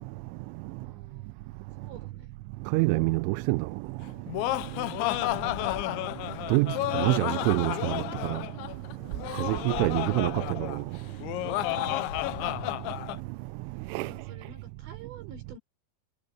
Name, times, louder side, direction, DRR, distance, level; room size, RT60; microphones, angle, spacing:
voice 1, 0.6-1.5 1.8-2.3 13.9-15.6, right 5 dB, 65° right, 8.4 m, -50 dB
voice 2, 2.7-3.7 6.5-6.7 6.9-8.4 9.4-10.8 13.9-14.1, right 22 dB, 85° right, 3.1 m, -26 dB
Laughter, 4.0-13.2, left 17 dB, 80° left, 3.1 m, -31 dB
omnidirectional pair, 5.5 m